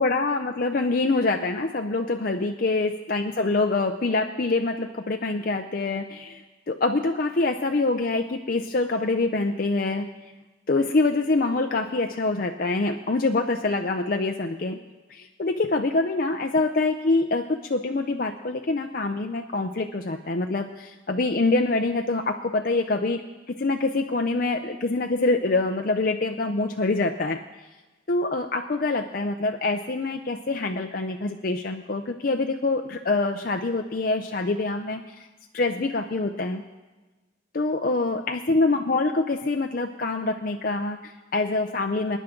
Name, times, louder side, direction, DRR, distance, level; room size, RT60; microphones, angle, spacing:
voice 1, 0.0-6.4 6.7-10.1 10.7-14.8 15.1-23.2 23.5-27.4 28.1-35.1 35.5-36.6 37.5-42.2, left 3 dB, 50° left, 3 dB, 0.6 m, -25 dB
25.0 x 10.0 x 3.8 m, 1.2 s
head